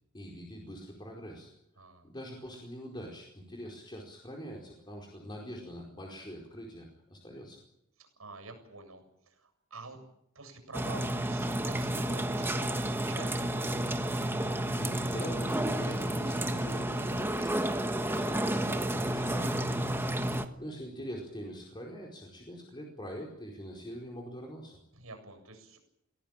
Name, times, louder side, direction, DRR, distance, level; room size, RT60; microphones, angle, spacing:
voice 1, 0.1-1.5 2.0-7.6 14.4-19.9 20.6-24.8, equal, 20° left, -1 dB, 4.7 m, -44 dB
voice 2, 1.8-2.1 8.0-10.1 10.3-13.5 20.4-20.6 24.9-25.8, right 3 dB, 85° right, 6 dB, 7.8 m, -48 dB
Water Fountain, 10.7-20.5, right 1 dB, 10° right, 1.4 m, -31 dB
24.0 x 17.5 x 9.0 m, 0.81 s
head